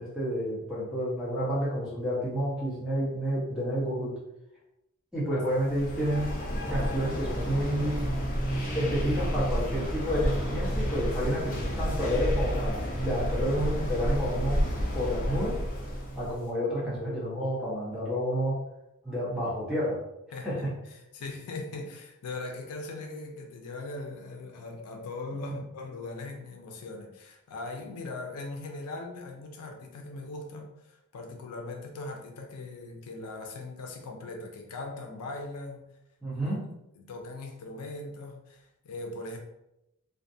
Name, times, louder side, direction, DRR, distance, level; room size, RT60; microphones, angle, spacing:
voice 1, 0.0-4.2 5.1-6.3 6.7-8.0 8.7-14.6 14.9-15.6 16.1-18.6 19.0-20.0 20.4-20.7 36.2-36.6, equal, 5° right, -9 dB, 1.0 m, -30 dB
sound 1, 5.6-16.4, equal, 40° left, 0.6 m, -30 dB
voice 2, 20.3-20.6 21.1-35.8 37.0-39.4, left 2 dB, 85° left, 2 dB, 0.4 m, -40 dB
2.5 x 2.2 x 2.6 m, 0.88 s
head